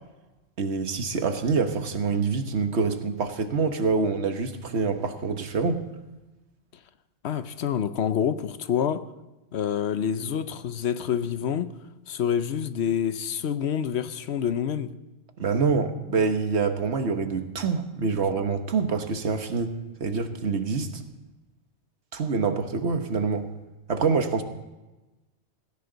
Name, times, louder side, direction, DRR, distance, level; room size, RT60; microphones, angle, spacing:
voice 1, 0.6-5.9 15.4-21.0 22.1-23.5 23.9-24.4, right 4 dB, 75° right, 1.5 m, -26 dB
voice 2, 7.2-9.0 9.5-11.7 12.1-14.9, left 8 dB, 75° left, 1.0 m, -27 dB
17.5 x 16.5 x 4.0 m
omnidirectional pair, 1.1 m